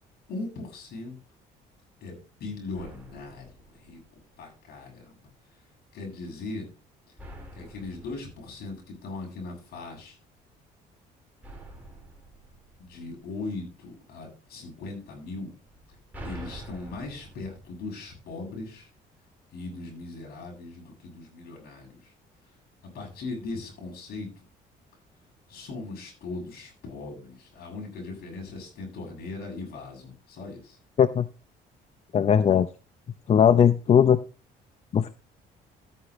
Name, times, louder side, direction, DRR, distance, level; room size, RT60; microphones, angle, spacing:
voice 1, 0.3-1.2 2.0-5.2 5.9-6.7 7.5-10.2 12.8-15.5 16.2-18.9 19.5-22.1 22.9-24.3 25.5-30.8, left 3 dB, 65° left, 1 dB, 7.6 m, -39 dB
sound 1, 2.7-4.6 7.2-9.6 11.4-13.7 15.6-18.7, right 1 dB, 10° right, 4.2 m, -46 dB
voice 2, 32.1-32.7 33.3-34.2 34.9-35.1, left 8 dB, 40° left, 12 dB, 0.6 m, -19 dB
14.0 x 9.7 x 3.1 m, 0.34 s
cardioid pair, 110°, 17 cm